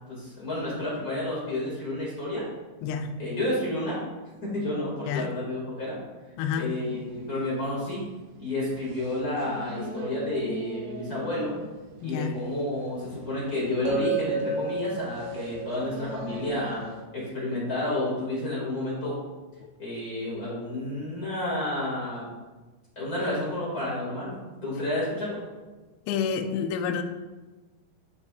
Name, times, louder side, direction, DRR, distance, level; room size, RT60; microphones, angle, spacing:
voice 1, 0.1-2.4 3.2-4.0 4.4-6.0 6.6-8.1 8.4-11.5 12.0-16.8 17.1-19.2 19.8-22.3 22.9-25.4, left 1 dB, 35° left, -7 dB, 1.5 m, -30 dB
voice 2, 6.4-6.7 12.0-12.4 26.1-27.0, left 6 dB, 80° left, 7 dB, 2.5 m, -28 dB
sound 1, 6.8-17.0, equal, 75° right, 2.8 m, -43 dB
sound 2, 13.9-18.0, right 3 dB, 55° right, 2.5 m, -32 dB
9.5 x 6.3 x 2.4 m, 1.2 s
omnidirectional pair, 5.0 m